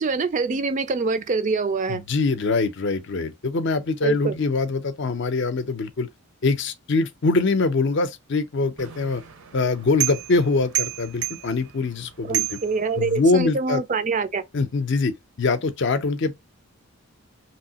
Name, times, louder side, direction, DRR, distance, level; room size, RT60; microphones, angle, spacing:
voice 1, 0.0-2.0 4.0-4.3 12.2-14.4, right 4 dB, 35° right, 0.3 m, -25 dB
voice 2, 1.9-6.1 6.4-9.2 9.5-12.6 13.0-13.8 14.5-15.1 15.4-16.3, left 3 dB, 55° left, 0.5 m, -23 dB
sound 1, 8.8-13.5, right 13 dB, 80° right, 0.7 m, -31 dB
3.0 x 2.7 x 2.8 m
head